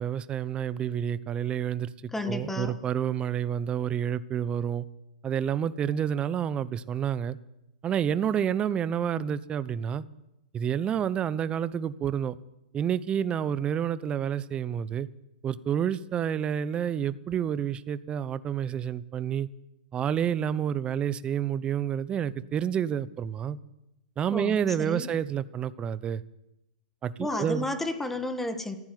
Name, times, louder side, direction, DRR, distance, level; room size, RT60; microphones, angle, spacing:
voice 1, 0.0-4.8 5.2-7.4 7.8-10.0 10.5-12.4 12.7-15.1 15.4-19.5 19.9-23.6 24.2-26.2 27.0-27.7, right 9 dB, 25° right, 17 dB, 0.8 m, -29 dB
voice 2, 2.1-2.7 24.3-25.1 27.2-28.8, left 2 dB, 5° left, 9 dB, 1.7 m, -32 dB
15.0 x 10.5 x 9.3 m, 0.90 s
hypercardioid pair, 120°, 4 cm